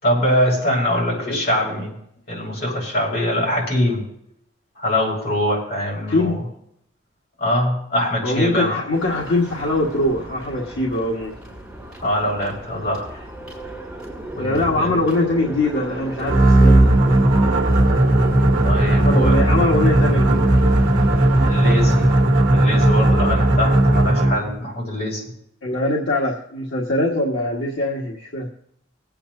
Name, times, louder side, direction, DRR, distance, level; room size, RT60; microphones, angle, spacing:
voice 1, 0.0-1.9 2.3-4.0 4.8-6.4 7.4-8.7 12.0-13.1 14.3-15.0 18.6-19.4 21.4-22.1 22.5-25.2, left 1 dB, 55° left, -3 dB, 5.6 m, -23 dB
voice 2, 0.9-1.4 6.0-6.4 8.2-11.4 14.4-17.1 18.8-20.5 21.3-21.5 25.6-28.5, left 2 dB, 75° left, -3 dB, 1.6 m, -22 dB
sound 1, 8.9-22.2, right 1 dB, 5° right, 5.7 m, -35 dB
sound 2, 16.3-24.5, right 1 dB, 75° right, 1.0 m, -16 dB
23.0 x 8.8 x 2.7 m, 0.71 s
head